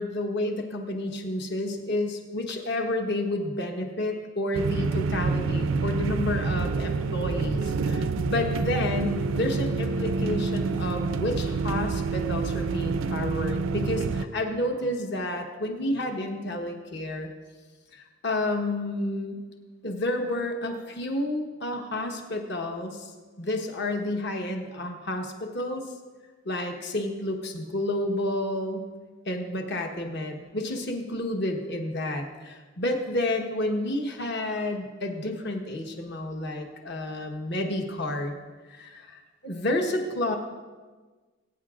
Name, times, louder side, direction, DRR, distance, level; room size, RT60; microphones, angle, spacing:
voice 1, 0.0-17.3 17.9-19.4 19.8-23.1 23.4-25.8 26.4-28.9 29.2-38.4 38.7-39.2 39.4-40.3, left 1 dB, 55° left, 3 dB, 1.2 m, -30 dB
sound 1, 4.5-14.2, right 4 dB, 75° right, 0.4 m, -27 dB
20.5 x 9.4 x 2.5 m, 1.4 s
head